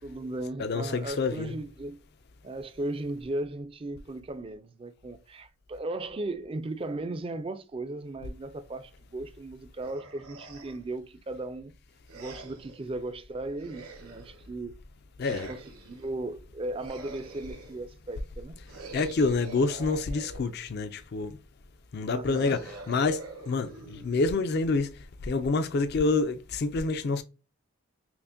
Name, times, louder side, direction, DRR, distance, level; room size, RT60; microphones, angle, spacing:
voice 1, 0.0-2.0 2.4-11.7 12.1-14.8 15.2-18.6 22.1-22.7, right 2 dB, 25° right, 0.3 m, -37 dB
voice 2, 0.6-1.5 15.2-15.5 18.9-21.4 21.9-27.2, left 3 dB, 45° left, 0.4 m, -28 dB
sound 1, 9.8-10.9 12.1-12.8 13.6-14.5 15.2-16.1 16.8-17.9 18.7-20.7 22.3-24.7, right 3 dB, 85° right, 1.2 m, -46 dB
5.7 x 2.1 x 2.5 m
head